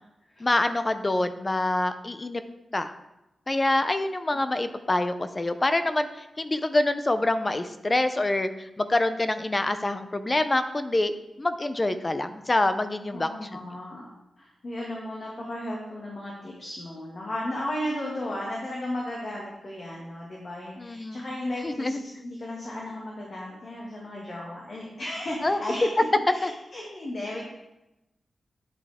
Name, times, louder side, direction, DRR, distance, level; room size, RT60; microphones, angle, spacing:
voice 1, 0.4-2.4 2.7-2.9 3.5-11.1 11.4-13.3 20.8-21.2 21.6-22.0 25.4-25.6 26.4-26.5, left 2 dB, 25° left, 10 dB, 0.5 m, -26 dB
voice 2, 13.1-14.0 14.4-25.9 26.3-27.4, left 1 dB, 45° left, -4 dB, 2.0 m, -35 dB
9.9 x 8.1 x 3.6 m, 0.93 s
wide cardioid pair, 135°, 0 cm